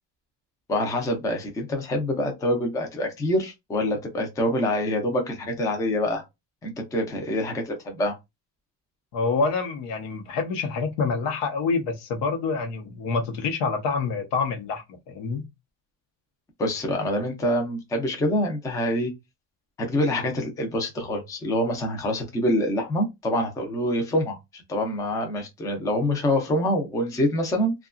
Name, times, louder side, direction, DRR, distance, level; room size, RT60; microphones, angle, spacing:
voice 1, 0.7-6.2 6.6-8.2 16.6-19.1 19.8-27.7, left 1 dB, 10° left, 0.3 m, -26 dB
voice 2, 9.1-15.4, left 4 dB, 80° left, 0.9 m, -27 dB
2.8 x 2.3 x 2.3 m
cardioid pair, 160°, 42 cm